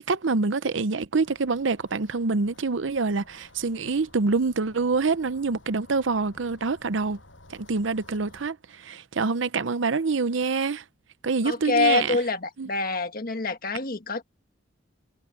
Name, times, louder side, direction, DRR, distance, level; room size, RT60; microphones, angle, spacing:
voice 1, 0.1-7.2 7.5-10.8 11.2-12.2 12.6-12.7, right 4 dB, 80° right, 0.7 m, -26 dB
sound 1, 1.1-8.5, left 2 dB, 80° left, 7.1 m, -54 dB
voice 2, 11.4-14.2, left 3 dB, 50° left, 1.6 m, -26 dB
head